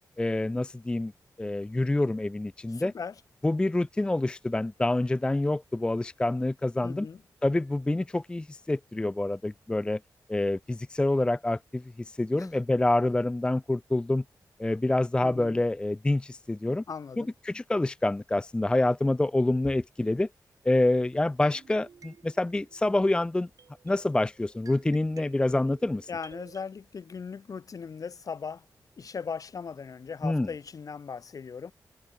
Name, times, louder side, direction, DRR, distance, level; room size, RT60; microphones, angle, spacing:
voice 1, 0.2-1.1 1.4-2.9 3.4-7.1 7.4-10.0 10.3-11.8 12.2-14.2 14.6-16.8 17.2-20.3 20.7-23.5 23.9-26.1 30.2-30.5, left 2 dB, 15° left, 0.4 m, -27 dB
voice 2, 2.7-3.2 6.8-7.2 12.4-12.5 15.2-15.6 16.9-17.3 26.1-28.6 29.0-31.7, left 5 dB, 55° left, 4.2 m, -38 dB
sound 1, 21.4-26.7, right 6 dB, 55° right, 5.5 m, -54 dB
wide cardioid pair, 140°, 7 cm